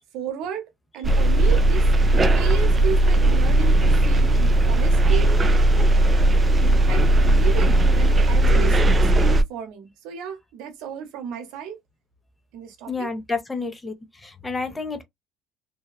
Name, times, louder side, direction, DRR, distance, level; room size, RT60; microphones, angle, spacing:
voice 1, 0.1-0.6 0.9-1.9 2.3-5.4 6.9-11.8 12.5-13.1, right 7 dB, 75° right, 0.9 m, -33 dB
sound 1, 1.0-9.4, right 1 dB, 25° right, 0.4 m, -17 dB
voice 2, 12.9-13.9 14.2-15.0, left 4 dB, 15° left, 0.7 m, -29 dB
2.8 x 2.2 x 2.3 m
supercardioid pair, 90°, 0 cm